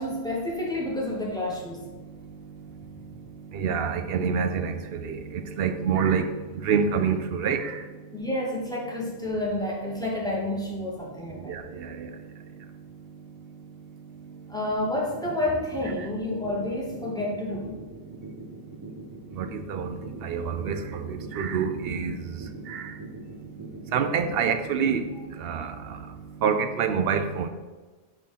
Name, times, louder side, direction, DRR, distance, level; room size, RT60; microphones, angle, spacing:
voice 1, 0.0-1.8 8.1-11.5 14.5-17.7, left 1 dB, 5° left, -4 dB, 1.2 m, -29 dB
voice 2, 3.5-7.9 11.4-12.1 19.3-23.0 23.9-25.1 25.4-26.0 26.4-27.5, right 6 dB, 65° right, 8 dB, 0.7 m, -27 dB
sound 1, 14.7-24.7, right 2 dB, 30° right, 0.5 m, -42 dB
4.5 x 4.4 x 5.5 m, 1.3 s
omnidirectional pair, 1.2 m